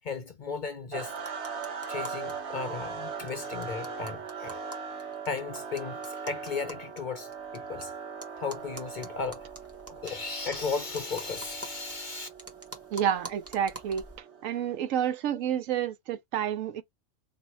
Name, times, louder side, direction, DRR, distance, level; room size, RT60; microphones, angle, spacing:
voice 1, 0.0-1.2 1.9-4.6 5.2-7.9 8.3-9.6 9.9-12.3, left 5 dB, 50° left, 0.6 m, -35 dB
sound 1, 0.9-15.0, right 5 dB, 60° right, 1.3 m, -40 dB
sound 2, 1.2-2.3 2.6-2.7 2.9-3.0 3.3-7.8 8.2-14.2, equal, 15° right, 0.8 m, -46 dB
voice 2, 12.9-14.0 14.4-16.8, right 9 dB, 90° right, 1.0 m, -29 dB
2.9 x 2.7 x 4.1 m
omnidirectional pair, 1.3 m